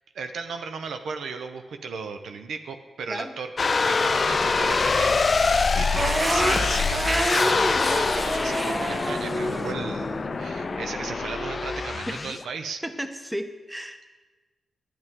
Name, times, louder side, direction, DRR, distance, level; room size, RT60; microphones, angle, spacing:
voice 1, 0.1-3.5 3.8-12.8, right 5 dB, 80° right, 7 dB, 0.5 m, -35 dB
sound 1, 3.6-12.4, left 4 dB, 50° left, 0.3 m, -25 dB
sound 2, 6.0-12.0, right 1 dB, 25° right, 1.1 m, -29 dB
voice 2, 12.8-14.1, equal, 5° right, 7 dB, 0.8 m, -34 dB
9.6 x 9.1 x 3.6 m, 1.3 s
supercardioid pair, 50°, 0 cm